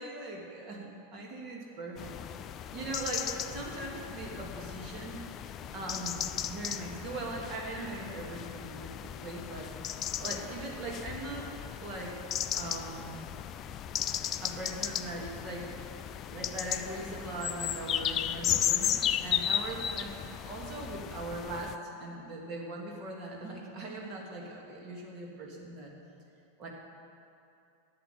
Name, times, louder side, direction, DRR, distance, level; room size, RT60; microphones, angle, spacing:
voice 1, 0.0-2.1 2.4-5.2 5.7-9.7 10.2-11.5 11.8-12.2 12.5-13.2 14.4-15.8 16.3-25.9 26.6-26.7, right 2 dB, 35° right, -1 dB, 2.6 m, -40 dB
sound 1, 2.0-21.8, left 10 dB, 30° left, 0.4 m, -35 dB
11.0 x 8.2 x 9.1 m, 2.7 s
figure-of-eight pair, 90°, 0 cm